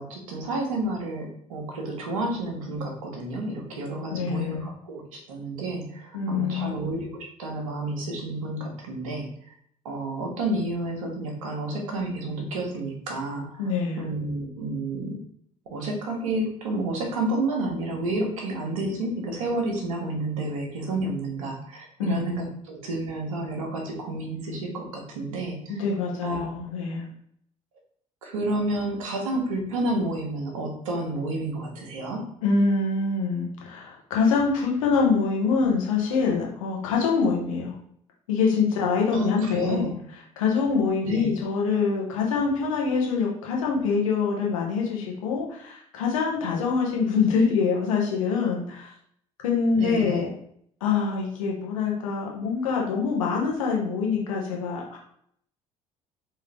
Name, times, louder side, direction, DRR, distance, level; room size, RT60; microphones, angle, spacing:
voice 1, 0.0-9.3 9.8-13.7 14.0-15.2 15.7-25.8 26.2-26.6 28.2-32.3 39.1-40.0 41.1-41.3 49.8-50.2, right 2 dB, 70° right, 0 dB, 1.2 m, -30 dB
voice 2, 4.1-4.7 6.1-6.8 13.6-14.0 22.0-22.3 25.7-27.1 32.4-37.7 38.3-39.9 40.4-48.9 49.4-50.3 50.8-55.0, left 5 dB, 70° left, -1 dB, 1.2 m, -25 dB
3.7 x 3.5 x 3.4 m, 0.66 s
figure-of-eight pair, 55°, 18 cm